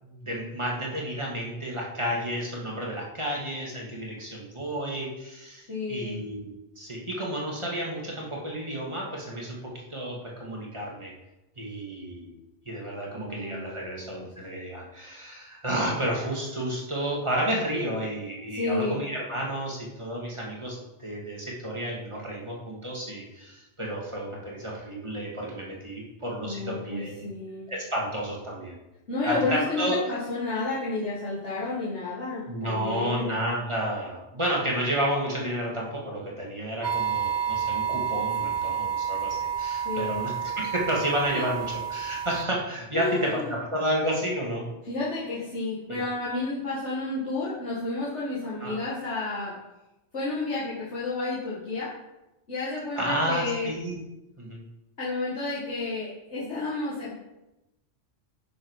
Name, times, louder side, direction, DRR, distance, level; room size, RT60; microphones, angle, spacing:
voice 1, 0.0-6.5 6.8-11.1 11.6-12.3 12.7-27.3 27.7-28.8 29.2-30.0 32.5-43.4 43.7-44.6 45.9-46.0 48.6-48.8 52.9-54.0 54.4-54.6, right 1 dB, 25° right, -3 dB, 2.5 m, -31 dB
voice 2, 5.7-6.2 13.1-14.3 18.5-19.0 26.4-27.7 29.1-33.3 39.8-40.1 41.3-41.4 42.9-43.5 44.8-49.6 50.1-51.9 52.5-53.7 55.0-57.1, left 3 dB, 70° left, -8 dB, 2.4 m, -31 dB
sound 1, 36.8-42.5, right 8 dB, 60° right, 0.5 m, -30 dB
11.0 x 7.1 x 4.9 m, 0.97 s
omnidirectional pair, 1.2 m